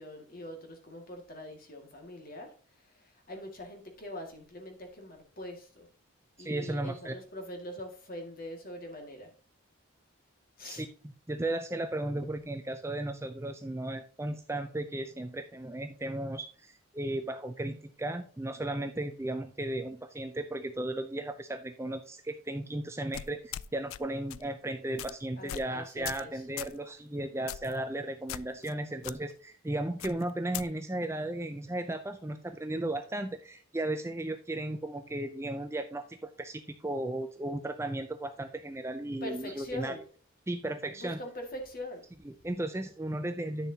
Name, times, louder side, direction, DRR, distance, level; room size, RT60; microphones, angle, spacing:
voice 1, 0.0-2.5 2.9-5.9 6.4-9.3 10.6-10.9 25.4-26.4 39.2-40.0 40.9-42.0, left 1 dB, 40° left, 3 dB, 2.0 m, -43 dB
voice 2, 6.4-7.1 10.6-10.9 11.3-40.0 40.5-41.2 42.2-43.7, right 1 dB, 10° right, 7 dB, 0.4 m, -35 dB
sound 1, 23.1-24.0 24.3-24.5 25.0-25.1 25.5-25.7 26.0-26.3 26.6-26.8 27.5-27.8 28.3-28.7 29.0-29.2 30.0-30.7, left 12 dB, 75° left, 0.3 m, -39 dB
10.5 x 6.8 x 2.8 m, 0.41 s
head